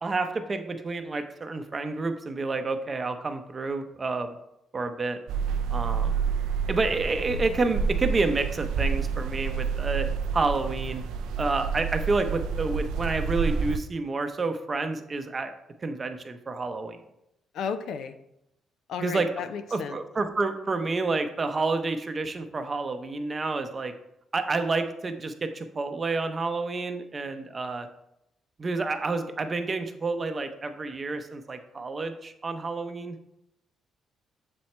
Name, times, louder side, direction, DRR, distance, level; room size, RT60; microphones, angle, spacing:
voice 1, 0.0-4.4 4.7-5.2 5.7-6.2 6.7-10.1 10.3-11.0 11.4-15.5 15.8-17.0 19.0-19.3 19.7-23.9 24.3-27.9 28.6-33.2, right 3 dB, 35° right, 8 dB, 0.6 m, -29 dB
sound 1, 5.3-13.8, right 6 dB, 85° right, 0.3 m, -29 dB
voice 2, 17.5-18.1 18.9-20.0, left 6 dB, 75° left, 9 dB, 0.5 m, -33 dB
6.9 x 4.3 x 3.2 m, 0.83 s
cardioid pair, 90°, 0 cm